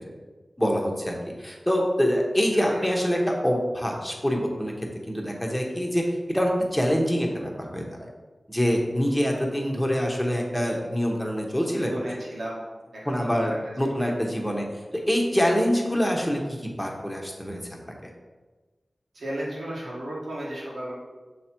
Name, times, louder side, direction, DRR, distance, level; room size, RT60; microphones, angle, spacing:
voice 1, 0.6-4.7 5.1-6.0 6.3-8.0 8.5-11.9 13.1-14.6 14.9-17.6 17.9-18.0, equal, 5° left, 0 dB, 1.2 m, -25 dB
voice 2, 11.8-12.6 12.9-14.0 19.1-20.9, right 1 dB, 90° right, -5 dB, 1.8 m, -35 dB
6.5 x 3.2 x 4.4 m, 1.3 s
cardioid pair, 50°, 0 cm